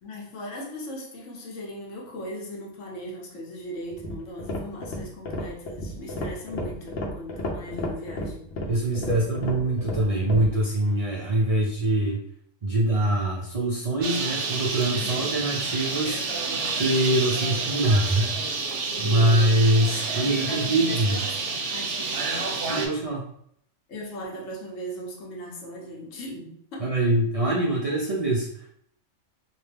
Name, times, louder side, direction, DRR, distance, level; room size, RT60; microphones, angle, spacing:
voice 1, 0.0-8.5 9.1-10.0 18.9-19.5 20.2-21.4 21.7-22.4 23.9-26.9, equal, 90° left, -1 dB, 1.1 m, -38 dB
sound 1, 3.9-10.5, left 1 dB, 60° left, 0.8 m, -33 dB
voice 2, 8.7-12.2 12.6-16.2 16.7-18.4 19.0-21.2 22.7-23.2 26.8-28.7, right 1 dB, 45° right, -5 dB, 0.4 m, -24 dB
Bird, 14.0-22.9, right 4 dB, 70° right, 0.9 m, -29 dB
2.8 x 2.2 x 3.3 m, 0.67 s
omnidirectional pair, 1.3 m